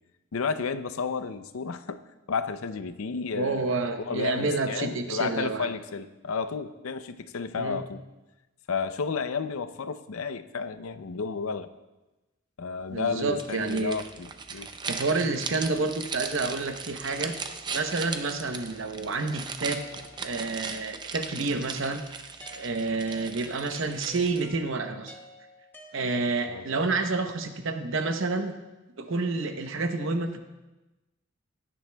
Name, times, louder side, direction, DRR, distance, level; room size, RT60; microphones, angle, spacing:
voice 1, 0.3-2.0 2.3-3.7 4.0-8.0 8.7-11.7 12.6-14.7 26.5-26.6, left 5 dB, 90° left, 12 dB, 0.5 m, -32 dB
voice 2, 3.3-5.7 7.6-7.8 12.9-14.0 14.5-17.4 17.7-19.8 20.2-22.0 22.5-25.1 25.9-28.5 29.0-30.4, right 3 dB, 65° right, 7 dB, 0.8 m, -29 dB
sound 1, 13.4-24.6, right 5 dB, 20° right, 0.5 m, -38 dB
sound 2, 17.1-18.9 19.7-21.2 22.4-26.5, left 1 dB, 10° left, 1.3 m, -51 dB
16.5 x 10.0 x 2.2 m, 1.1 s
head